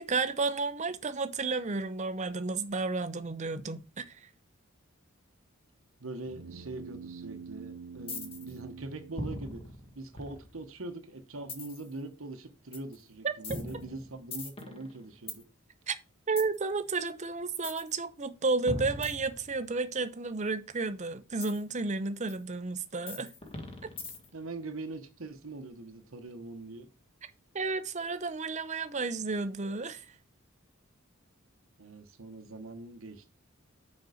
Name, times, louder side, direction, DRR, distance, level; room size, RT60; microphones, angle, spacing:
voice 1, 0.0-4.2 13.2-13.4 15.9-16.0 16.3-23.3 23.8-23.9 27.5-30.1, right 3 dB, 35° right, 0.7 m, -32 dB
voice 2, 6.0-9.7 9.9-15.4 24.3-26.9 31.8-33.3, right 2 dB, 70° right, 1.0 m, -42 dB
sound 1, 6.3-10.0, right 5 dB, 90° right, 0.6 m, -46 dB
sound 2, 8.1-8.6 9.2-10.7 11.5-11.9 12.7-13.0 13.4-15.4 16.4-16.6 17.6-17.9 18.7-19.8 21.4-21.6 22.3-22.4 23.1-24.4, left 2 dB, 25° left, 1.4 m, -40 dB
6.7 x 5.3 x 5.0 m
head